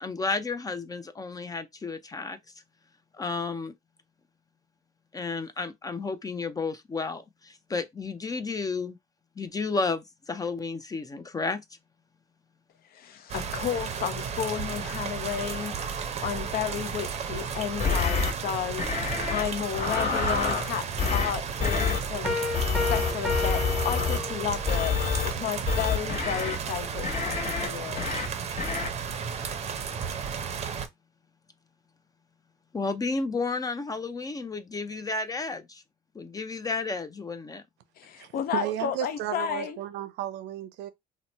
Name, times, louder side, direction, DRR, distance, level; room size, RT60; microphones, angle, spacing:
voice 1, 0.0-2.4 3.1-3.7 5.1-9.0 9.4-11.6 32.7-35.8 36.1-37.6, left 3 dB, 20° left, 0.4 m, -32 dB
voice 2, 12.9-22.4 22.9-28.0 38.0-39.8, left 9 dB, 60° left, 0.6 m, -33 dB
sound 1, 13.3-30.9, right 6 dB, 40° right, 0.6 m, -34 dB
sound 2, 17.8-18.3 18.8-19.4 19.7-20.7 21.0-21.3 21.6-22.0 22.5-24.2 24.7-25.3 25.7-26.6 27.0-27.7 28.0-28.3 28.6-28.9, left 5 dB, 45° left, 1.3 m, -27 dB
Piano, 22.2-24.7, left 3 dB, 5° right, 0.8 m, -31 dB
voice 3, 38.2-40.9, right 12 dB, 85° right, 0.6 m, -33 dB
2.9 x 2.1 x 4.1 m
cardioid pair, 110°, 17 cm